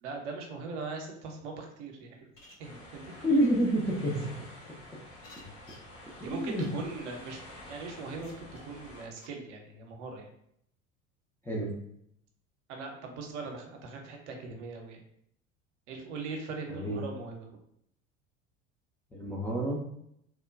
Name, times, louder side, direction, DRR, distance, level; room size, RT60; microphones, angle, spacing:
voice 1, 0.0-2.3 2.6-3.4 6.2-7.4 7.7-10.3 12.7-15.0 15.9-17.5, right 4 dB, 60° right, 2 dB, 0.7 m, -40 dB
sound 1, 2.3-2.5 3.1-3.2 3.4-3.5 4.3-4.4 5.2-5.8 6.6-6.7 7.1-7.3 8.2-8.6 9.2-9.3, left 4 dB, 80° left, 0.7 m, -52 dB
sound 2, 2.6-9.1, left 1 dB, 35° left, 1.0 m, -49 dB
voice 2, 3.2-4.3 6.2-6.6 11.4-11.7 16.7-17.0 19.1-19.8, right 1 dB, 5° left, -5 dB, 0.3 m, -28 dB
2.9 x 2.1 x 2.4 m, 0.72 s
figure-of-eight pair, 70°, 39 cm